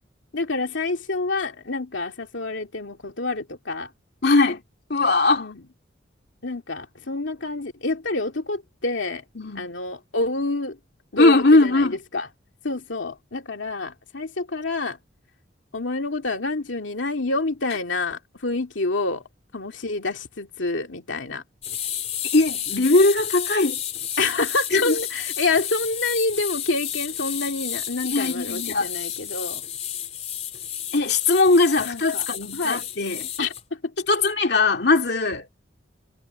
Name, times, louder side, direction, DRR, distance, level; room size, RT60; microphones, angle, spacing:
voice 1, 0.3-3.9 5.4-5.6 6.4-9.2 9.5-10.8 11.1-12.3 12.6-15.0 15.7-19.2 19.5-21.4 24.2-29.6 31.9-32.3 32.5-32.8 33.4-34.1, left 3 dB, 90° left, 2.4 m, -28 dB
voice 2, 4.2-4.6 4.9-5.5 9.4-9.7 11.2-12.0 22.3-23.8 24.7-24.9 28.1-28.9 30.9-33.3 34.1-35.5, left 3 dB, 60° left, 2.6 m, -20 dB
sound 1, 21.6-33.6, left 10 dB, 35° left, 3.3 m, -32 dB
head